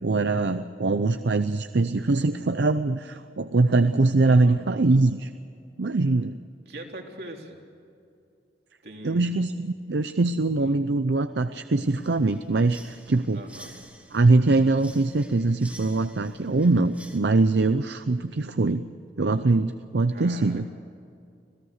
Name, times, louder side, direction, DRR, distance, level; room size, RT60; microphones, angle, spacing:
voice 1, 0.0-5.3 5.8-6.3 9.0-13.4 14.1-18.8 19.2-20.7, right 3 dB, 85° right, 10 dB, 0.7 m, -22 dB
voice 2, 4.2-4.6 6.7-7.6 8.8-9.3 10.6-10.8 13.3-13.8 20.1-20.7, right 1 dB, 70° right, 1 dB, 3.4 m, -41 dB
sound 1, 11.8-17.2, right 1 dB, 10° right, 1.8 m, -50 dB
26.5 x 17.5 x 6.6 m, 2.5 s
head